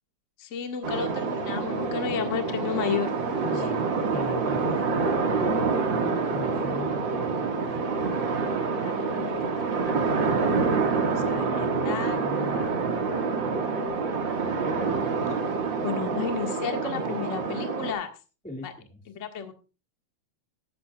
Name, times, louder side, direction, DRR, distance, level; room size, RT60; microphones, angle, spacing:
voice 1, 0.4-3.2 3.5-3.6 8.7-10.0 11.0-12.7 15.8-18.1 18.6-18.7 19.1-19.5, left 7 dB, 35° left, 5 dB, 1.5 m, -33 dB
sound 1, 0.8-17.9, right 4 dB, 45° right, 2.2 m, -27 dB
voice 2, 3.4-4.8 5.4-7.4 11.0-12.7 14.6-15.0 18.4-19.0, left 1 dB, 5° left, 2 dB, 1.3 m, -37 dB
14.5 x 14.0 x 2.3 m, 0.32 s
omnidirectional pair, 3.4 m